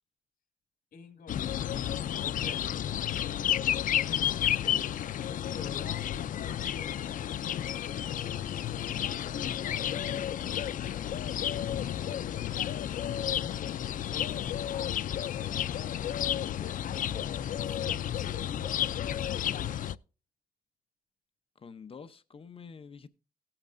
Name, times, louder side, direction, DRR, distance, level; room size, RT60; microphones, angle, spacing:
voice 1, 0.9-3.0 5.3-7.2 8.7-13.0 14.1-15.7 16.0-19.8, left 5 dB, 85° left, 2.1 m, -48 dB
sound 1, 1.3-20.0, left 10 dB, 65° left, 0.4 m, -32 dB
voice 2, 4.5-4.9 21.6-23.1, left 5 dB, 40° left, 0.7 m, -47 dB
17.0 x 8.8 x 2.5 m
wide cardioid pair, 145°, 15 cm